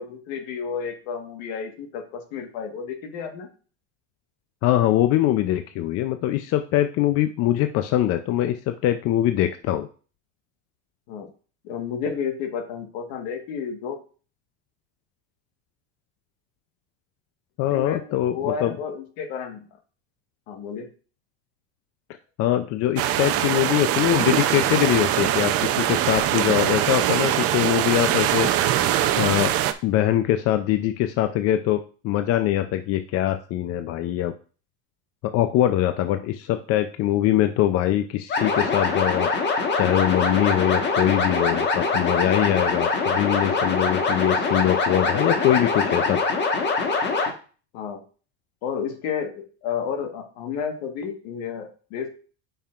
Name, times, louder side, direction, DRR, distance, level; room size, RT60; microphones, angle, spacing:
voice 1, 0.0-3.5 11.1-11.3 11.6-14.0 17.7-19.7 20.5-20.9 47.7-48.0 48.6-52.1, left 7 dB, 70° left, 5 dB, 1.5 m, -31 dB
voice 2, 4.6-9.9 17.6-18.7 22.4-28.5 29.2-29.5 29.8-34.3 35.2-39.3 39.8-46.2, left 13 dB, 50° left, 9 dB, 0.5 m, -23 dB
sound 1, 23.0-29.7, right 12 dB, 45° right, 0.6 m, -22 dB
sound 2, 38.3-47.3, left 4 dB, 35° left, 1.4 m, -23 dB
8.8 x 5.6 x 2.5 m, 0.38 s
supercardioid pair, 125°, 32 cm